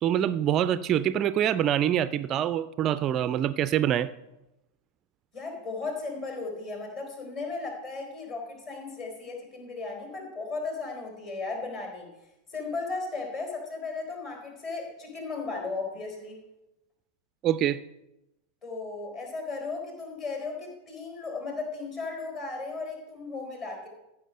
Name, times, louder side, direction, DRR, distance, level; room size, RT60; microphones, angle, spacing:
voice 1, 0.0-4.1 17.4-17.8, right 10 dB, 30° right, 15 dB, 0.4 m, -25 dB
voice 2, 5.3-12.1 12.5-16.4 18.6-23.9, left 3 dB, 35° left, 2 dB, 3.9 m, -36 dB
14.5 x 6.1 x 6.4 m, 0.94 s
figure-of-eight pair, 90°, 0 cm